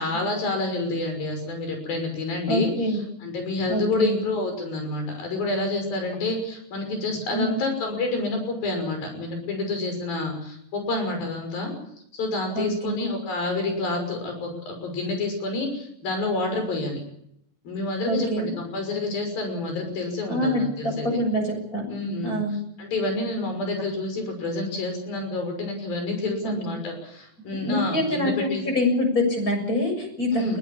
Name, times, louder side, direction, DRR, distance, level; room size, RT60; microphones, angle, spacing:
voice 1, 0.0-11.7 12.1-17.0 17.6-21.1 21.9-22.4 22.8-28.7 30.3-30.6, left 2 dB, 80° left, 5 dB, 7.8 m, -28 dB
voice 2, 2.5-3.0 3.7-4.2 7.3-7.6 12.6-13.1 18.1-18.5 20.3-21.9 22.2-22.6 26.4-26.5 27.7-28.5 28.7-30.6, left 1 dB, 20° left, 4 dB, 7.4 m, -25 dB
21.0 x 18.5 x 8.7 m, 0.74 s
omnidirectional pair, 4.1 m